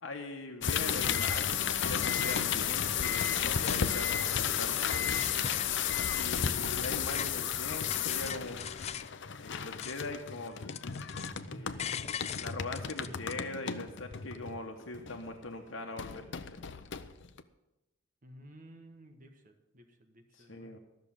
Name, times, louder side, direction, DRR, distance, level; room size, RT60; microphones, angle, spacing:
voice 1, 0.0-5.2 6.1-8.7 9.4-10.6 11.5-16.6 20.3-20.8, left 2 dB, 85° left, 2 dB, 1.1 m, -41 dB
sound 1, 0.6-15.4 16.0-17.4, left 8 dB, 65° left, 0.7 m, -33 dB
sound 2, 1.2-1.4 1.7-2.5 2.9-4.0 4.4-5.9 6.3-9.1 9.5-10.2 10.5-11.5 11.8-13.3, left 8 dB, 35° left, 0.4 m, -41 dB
sound 3, 11.2-13.5, right 1 dB, 15° right, 5.1 m, -52 dB
voice 2, 18.2-20.7, right 1 dB, 45° right, 6 dB, 1.3 m, -55 dB
13.0 x 6.6 x 8.8 m, 0.99 s
head